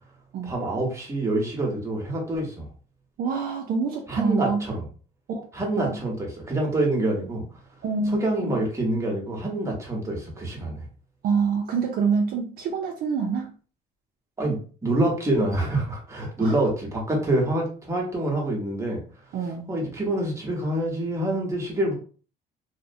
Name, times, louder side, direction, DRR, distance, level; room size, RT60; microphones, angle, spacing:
voice 1, 0.4-2.7 4.1-4.8 5.5-7.5 8.1-10.8 14.4-19.0 19.7-21.9, right 1 dB, 15° right, -1 dB, 1.0 m, -26 dB
voice 2, 3.2-4.6 5.3-5.5 5.8-6.0 7.8-8.6 11.2-13.5 16.4-16.6 19.3-19.7, right 5 dB, 60° right, 3 dB, 0.4 m, -26 dB
2.5 x 2.0 x 2.6 m, 0.39 s
cardioid pair, 110°, 17 cm